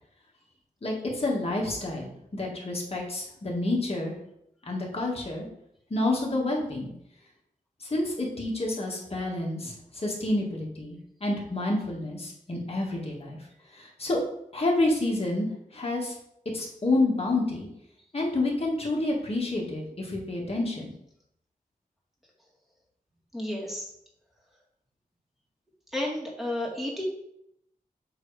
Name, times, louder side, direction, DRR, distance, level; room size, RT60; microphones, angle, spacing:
voice 1, 0.8-4.1 4.7-5.5 5.9-6.9 7.8-13.4 13.7-14.2 14.5-16.2 16.5-17.7 18.1-20.9, left 2 dB, 40° left, -2 dB, 1.7 m, -29 dB
voice 2, 23.3-23.9 25.9-27.0, left 1 dB, ahead, -3 dB, 1.8 m, -32 dB
7.3 x 3.0 x 4.8 m, 0.77 s
wide cardioid pair, 95°, 15 cm